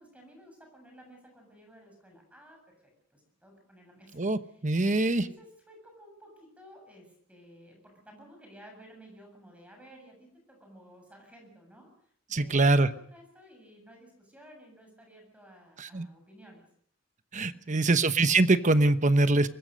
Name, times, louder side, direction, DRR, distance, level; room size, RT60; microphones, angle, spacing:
voice 1, 0.0-4.7 5.0-16.6 17.5-17.9, equal, 5° right, 2 dB, 7.5 m, -54 dB
voice 2, 4.2-5.2 12.3-12.9 15.8-16.1 17.3-19.5, right 2 dB, 40° right, 11 dB, 1.1 m, -23 dB
24.0 x 20.5 x 6.5 m, 0.64 s
head